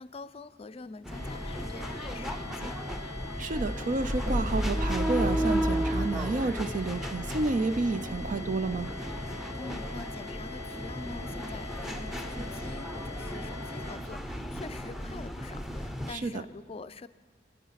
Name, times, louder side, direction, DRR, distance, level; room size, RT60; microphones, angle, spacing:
voice 1, 0.0-2.8 9.6-17.1, left 3 dB, 35° left, 15 dB, 0.4 m, -45 dB
sound 1, 1.0-16.1, equal, ahead, 0.7 m, -33 dB
sound 2, 1.1-14.0, left 4 dB, 75° right, 5.2 m, -44 dB
voice 2, 3.4-8.9 16.1-16.4, right 3 dB, 45° right, 11 dB, 0.4 m, -30 dB
24.5 x 9.4 x 5.8 m, 1.4 s
head